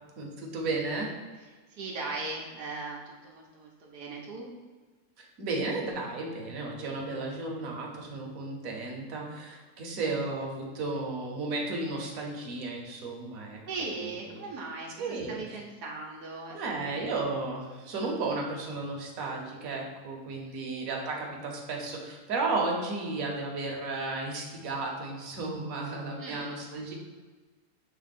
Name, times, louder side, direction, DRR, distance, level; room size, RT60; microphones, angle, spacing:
voice 1, 0.2-1.1 5.2-13.6 15.0-15.4 16.5-26.9, right 3 dB, 60° right, -1 dB, 1.4 m, -34 dB
voice 2, 1.7-4.5 13.7-17.2 20.4-20.7 26.2-26.7, right 3 dB, 80° right, -2 dB, 1.4 m, -39 dB
6.3 x 3.6 x 4.2 m, 1.4 s
omnidirectional pair, 1.7 m